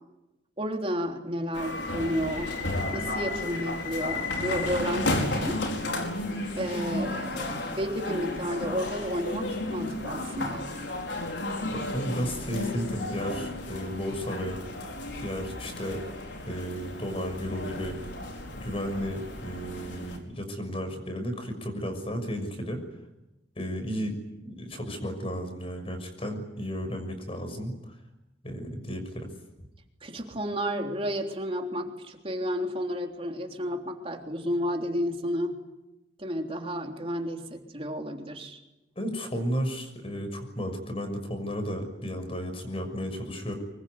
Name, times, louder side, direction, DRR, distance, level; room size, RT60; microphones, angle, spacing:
voice 1, 0.6-2.5 2.9-5.6 6.5-10.7 30.0-35.6 36.2-38.6, equal, 30° right, 3 dB, 3.5 m, -32 dB
sound 1, 1.5-20.2, left 2 dB, 80° left, 5.0 m, -33 dB
voice 2, 11.7-14.6 15.2-16.0 16.4-18.0 18.6-22.8 23.6-24.2 24.4-27.8 28.4-29.3 39.0-43.5, equal, 35° left, 7 dB, 6.3 m, -33 dB
25.0 x 23.0 x 9.6 m, 0.96 s
head